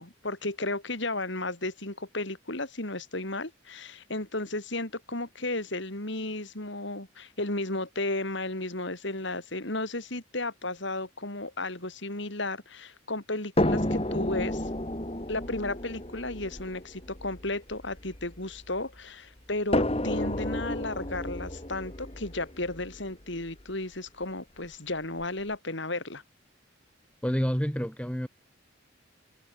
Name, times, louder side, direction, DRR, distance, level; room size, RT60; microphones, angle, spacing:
voice 1, 0.0-14.7 15.3-26.2, left 2 dB, 60° left, 3.8 m, -34 dB
sound 1, 13.6-18.8 19.7-23.7 24.6-24.7 25.2-25.3, left 1 dB, 30° left, 2.3 m, -31 dB
voice 2, 27.2-28.3, equal, 5° left, 3.5 m, -28 dB
head